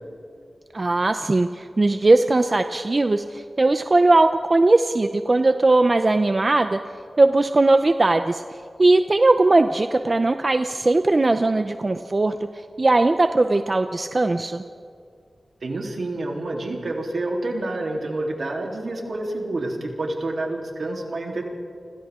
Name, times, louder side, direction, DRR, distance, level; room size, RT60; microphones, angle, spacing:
voice 1, 0.7-6.8 7.2-8.4 8.8-12.4 12.8-14.6, right 2 dB, 40° right, 8 dB, 0.7 m, -19 dB
voice 2, 15.6-21.4, right 2 dB, 80° right, -1 dB, 3.5 m, -28 dB
30.0 x 26.0 x 3.8 m, 2.3 s
wide cardioid pair, 90°, 0 cm